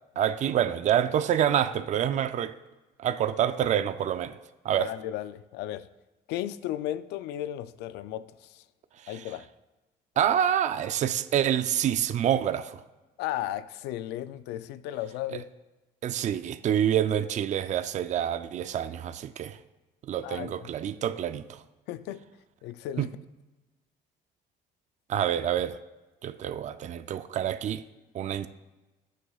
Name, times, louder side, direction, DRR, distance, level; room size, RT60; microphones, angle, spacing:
voice 1, 0.2-2.5 3.0-4.4 4.6-4.9 9.0-9.3 10.2-12.8 15.3-15.4 16.0-19.6 20.1-21.6 23.0-23.1 25.1-25.8 26.2-27.8 28.1-28.5, right 10 dB, 45° right, 0.5 m, -27 dB
voice 2, 4.8-5.9 6.3-8.6 9.1-9.5 13.2-15.5 20.2-20.5 21.9-22.3 22.6-23.1, left 13 dB, 90° left, 0.5 m, -35 dB
19.0 x 6.4 x 2.4 m
cardioid pair, 110°, 17 cm